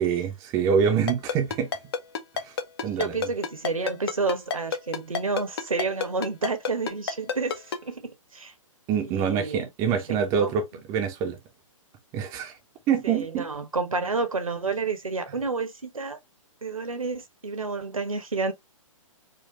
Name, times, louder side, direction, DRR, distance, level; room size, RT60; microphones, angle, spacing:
voice 1, 0.0-1.7 2.4-2.5 2.8-3.3 8.9-10.6 10.9-11.4 12.1-12.5 12.9-13.5, right 7 dB, 20° right, 0.6 m, -25 dB
Ringtone, 1.1-7.8, left 6 dB, 45° left, 0.8 m, -28 dB
voice 2, 3.0-8.0 8.3-8.5 9.0-10.5 13.0-16.2 16.6-18.5, right 4 dB, 80° right, 1.2 m, -30 dB
4.3 x 2.3 x 3.2 m
figure-of-eight pair, 125°, 17 cm